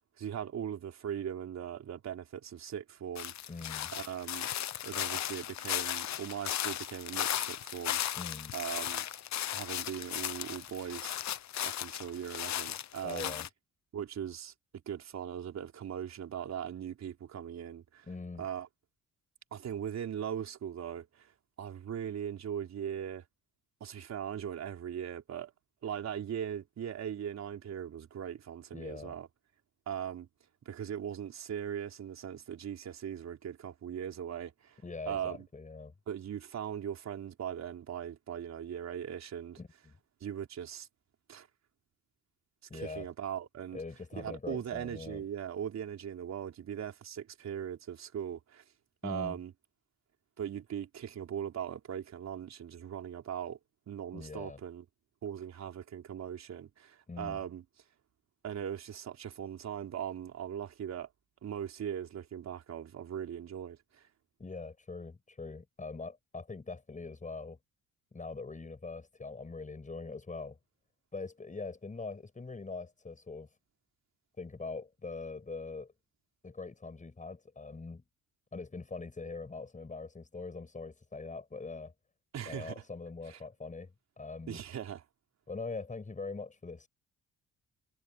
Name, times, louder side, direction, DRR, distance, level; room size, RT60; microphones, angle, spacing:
voice 1, 0.2-3.3 3.9-4.5 4.8-8.0 8.5-9.1 9.5-11.2 11.6-13.3 13.9-14.5 14.9-18.1 18.4-18.7 19.5-21.3 21.6-23.2 23.8-25.5 25.8-29.3 29.9-30.3 30.7-34.8 35.1-35.5 36.1-39.6 40.2-40.9 41.3-41.5 42.7-43.8 44.2-48.6 49.0-49.5 50.4-53.6 53.9-54.8 55.2-57.6 58.4-61.1 61.4-64.1 82.3-82.8 83.3-83.4 84.5-85.0, right 9 dB, 60° right, 4.1 m, -39 dB
sound 1, 3.1-13.5, left 11 dB, 65° left, 1.2 m, -36 dB
voice 2, 3.5-3.9 8.2-8.5 13.0-13.5 18.1-18.5 28.7-29.2 34.8-35.9 39.6-39.9 42.7-43.1 43.7-45.2 49.0-49.4 54.1-54.6 57.1-57.4 64.4-67.6 68.1-70.6 71.1-73.5 74.4-75.9 76.4-78.0 78.5-81.9 82.5-84.6 85.5-86.9, left 3 dB, 25° left, 7.7 m, -42 dB
cardioid pair, 90°, 30 cm